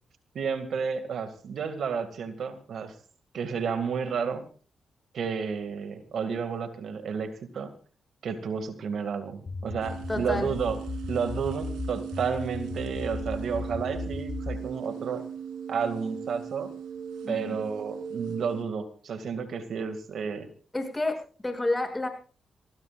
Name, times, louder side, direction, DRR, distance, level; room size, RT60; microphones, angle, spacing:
voice 1, 0.3-2.9 3.3-4.4 5.1-7.7 8.2-10.8 11.1-15.2 15.7-16.7 17.3-20.5, right 6 dB, 70° right, 8 dB, 2.2 m, -31 dB
sound 1, 9.5-14.7, left 4 dB, 45° left, 2.2 m, -36 dB
sound 2, 9.8-18.6, right 7 dB, 90° right, 3.3 m, -38 dB
voice 2, 10.1-10.5 17.2-17.6 20.7-22.1, left 2 dB, 20° left, 4 dB, 7.0 m, -30 dB
26.5 x 17.0 x 2.5 m, 0.39 s
supercardioid pair, 55°, 0 cm